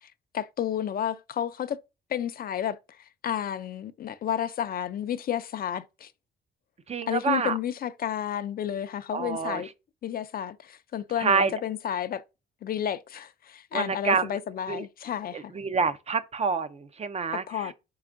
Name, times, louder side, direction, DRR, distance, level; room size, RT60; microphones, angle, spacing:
voice 1, 0.0-1.8 2.1-6.1 7.1-9.7 10.0-12.2 12.6-15.5 17.3-17.7, left 10 dB, 50° left, 0.4 m, -31 dB
voice 2, 6.9-7.5 9.1-9.6 11.2-11.5 13.7-14.4 14.7-14.9 15.3-17.7, right 5 dB, 35° right, 0.5 m, -27 dB
4.6 x 4.1 x 2.5 m
cardioid pair, 90°, 20 cm